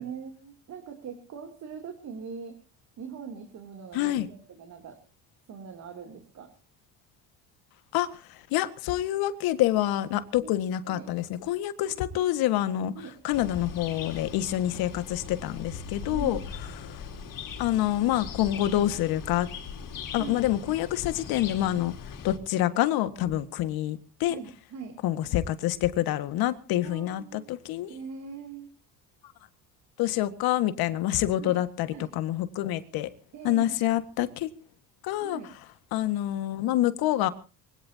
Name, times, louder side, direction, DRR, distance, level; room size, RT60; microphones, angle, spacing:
voice 1, 0.0-2.6 3.0-5.0 5.5-6.5 10.4-10.6 10.9-11.1 11.8-12.0 12.9-13.1 16.1-16.4 20.2-20.8 24.2-25.0 26.8-27.5 27.9-28.7 31.4-31.6 31.9-32.1 33.3-33.8 35.2-35.5, right 6 dB, 50° right, 4 dB, 3.1 m, -42 dB
voice 2, 3.9-4.3 7.9-12.9 13.2-16.4 16.9-17.0 17.6-19.5 20.1-21.9 22.2-24.4 25.0-27.9 30.0-33.1 33.4-34.5 35.0-35.4 35.9-37.3, left 13 dB, 75° left, 12 dB, 1.8 m, -27 dB
sound 1, 13.3-22.4, left 6 dB, 60° left, 4.1 m, -40 dB
23.5 x 17.5 x 2.8 m, 0.34 s
cardioid pair, 120°, 37 cm